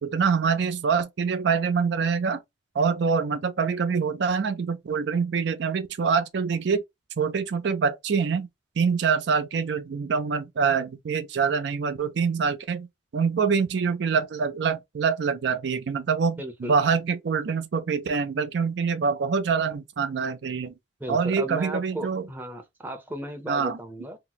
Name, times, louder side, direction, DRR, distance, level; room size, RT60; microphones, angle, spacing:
voice 1, 0.0-2.4 2.7-6.8 7.2-8.5 8.8-12.9 13.1-20.7 21.1-22.2 23.5-23.8, right 5 dB, 70° right, 0.4 m, -25 dB
voice 2, 16.4-16.7 21.0-24.2, equal, 10° right, 0.6 m, -35 dB
2.8 x 2.0 x 3.8 m
head